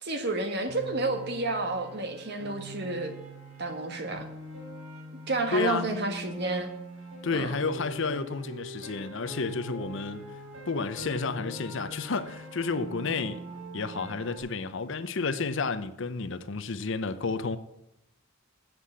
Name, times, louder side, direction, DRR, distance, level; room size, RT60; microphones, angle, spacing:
voice 1, 0.0-3.1 3.6-4.3 5.3-6.7 7.3-7.5, right 2 dB, 55° right, 1.5 m, -30 dB
Piano, 0.7-14.4, right 1 dB, 85° right, 3.4 m, -43 dB
voice 2, 5.5-5.9 7.2-10.3 10.7-13.4 13.7-17.6, left 4 dB, 60° left, 0.7 m, -31 dB
8.3 x 7.6 x 7.5 m
head